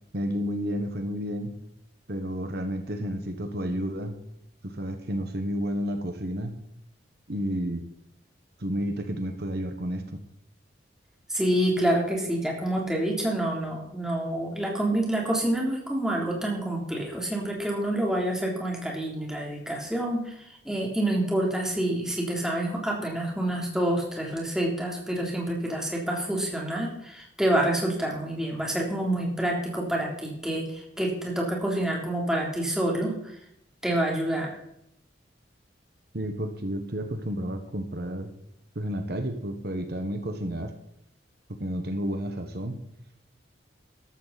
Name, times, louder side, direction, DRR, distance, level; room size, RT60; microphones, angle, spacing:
voice 1, 0.1-1.5 2.1-4.2 4.6-6.6 7.3-7.8 8.6-10.1 36.1-38.3 38.7-40.7 41.5-42.8, equal, 60° right, 6 dB, 1.4 m, -31 dB
voice 2, 11.3-20.3 20.7-33.3 33.8-34.5, right 1 dB, 5° right, -2 dB, 3.5 m, -27 dB
14.0 x 13.0 x 4.2 m, 0.76 s
head